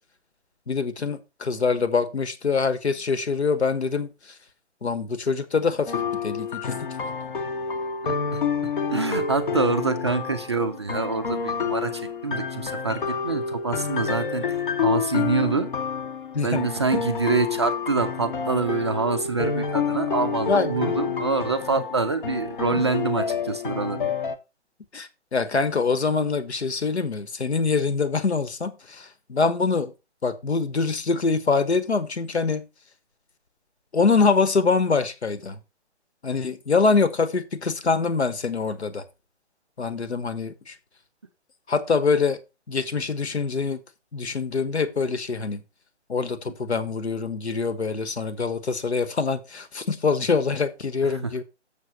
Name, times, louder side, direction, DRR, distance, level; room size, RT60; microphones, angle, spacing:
voice 1, 0.7-4.1 4.8-6.9 16.3-16.6 20.5-20.9 24.9-29.9 30.2-32.7 33.9-35.6 36.2-39.0 39.8-40.7 41.7-42.4 42.7-43.8 44.1-45.6 46.1-51.4, left 4 dB, 70° left, 1.2 m, -24 dB
sound 1, 5.9-24.4, left 6 dB, 45° left, 0.8 m, -28 dB
voice 2, 8.0-14.4 14.8-15.7 16.4-24.1, right 4 dB, 25° right, 0.5 m, -26 dB
6.9 x 6.2 x 4.4 m
figure-of-eight pair, 135°, 35 cm